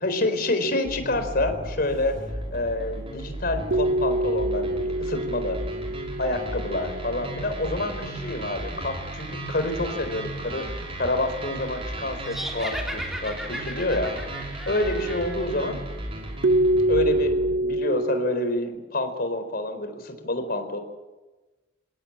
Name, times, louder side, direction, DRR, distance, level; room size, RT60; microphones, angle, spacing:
voice 1, 0.0-5.6 6.2-10.7 11.0-15.8 16.9-20.8, left 1 dB, 50° left, 8 dB, 4.3 m, -28 dB
sound 1, 0.8-17.6, right 1 dB, 30° right, 5.4 m, -35 dB
sound 2, 3.7-7.8 16.4-18.6, right 1 dB, 80° right, 1.0 m, -25 dB
sound 3, 12.3-15.7, equal, ahead, 2.9 m, -36 dB
27.5 x 18.5 x 9.0 m, 1.2 s
head